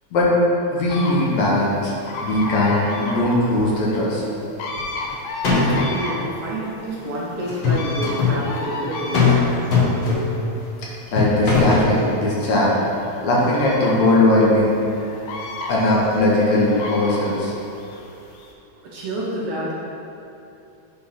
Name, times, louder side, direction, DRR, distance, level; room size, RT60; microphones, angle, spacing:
voice 1, 0.7-4.2 11.1-12.7 13.2-14.8 15.7-17.5, left 1 dB, 70° left, -5 dB, 2.5 m, -19 dB
sound 1, 0.9-18.5, left 2 dB, 85° left, 2.2 m, -34 dB
sound 2, 4.8-5.1 5.4-6.0 7.5-8.4 9.1-9.4 9.7-10.5 11.2-11.9, left 4 dB, 50° left, 1.5 m, -19 dB
voice 2, 5.4-9.2 9.6-9.7 18.8-19.7, right 1 dB, 65° right, -5 dB, 1.7 m, -29 dB
8.4 x 3.8 x 5.7 m, 2.8 s
omnidirectional pair, 3.4 m